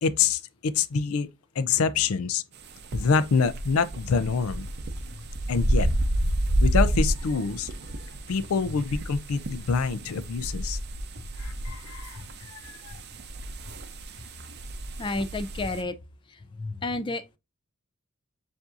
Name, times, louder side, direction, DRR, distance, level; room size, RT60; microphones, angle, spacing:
voice 1, 0.0-1.3 1.6-2.4 2.9-4.7 5.5-5.9 6.6-7.7 8.3-10.8 11.4-13.0, left 5 dB, 90° left, 0.5 m, -26 dB
sound 1, 2.5-15.8, right 1 dB, 50° right, 0.6 m, -30 dB
voice 2, 15.0-16.0 16.5-17.2, left 2 dB, 25° left, 0.4 m, -31 dB
7.2 x 2.6 x 2.5 m
head